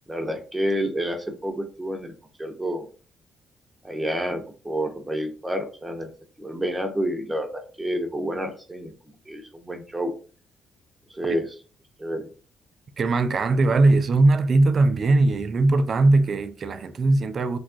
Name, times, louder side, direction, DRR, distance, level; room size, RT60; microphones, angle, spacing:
voice 1, 0.1-2.1 2.4-2.9 3.8-6.1 6.4-8.9 9.3-10.1 11.1-11.5 12.0-12.3, equal, 10° right, 0.7 m, -29 dB
voice 2, 13.0-17.6, right 2 dB, 50° right, 0.3 m, -20 dB
3.3 x 2.3 x 2.5 m
cardioid pair, 90°, 0 cm